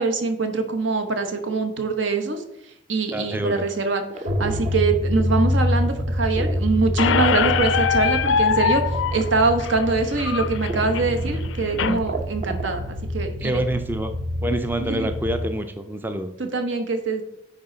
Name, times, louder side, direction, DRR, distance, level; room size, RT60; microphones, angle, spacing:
voice 1, 0.0-2.4 2.9-4.0 4.4-13.6 14.9-15.1 16.4-17.2, right 3 dB, 75° right, 6 dB, 1.1 m, -24 dB
voice 2, 3.1-3.6 13.4-14.1 14.4-16.3, right 1 dB, 10° right, 8 dB, 0.4 m, -26 dB
sound 1, 4.1-5.5 5.9-8.1 8.9-9.4 9.9-10.0 10.7-11.1 11.4-11.5 11.8-12.9, right 3 dB, 35° right, 0.7 m, -34 dB
sound 2, 4.3-15.4, left 1 dB, 55° right, 1.1 m, -27 dB
Squeak, 7.0-12.0, left 7 dB, 75° left, 0.4 m, -23 dB
9.4 x 4.4 x 3.9 m, 0.82 s
head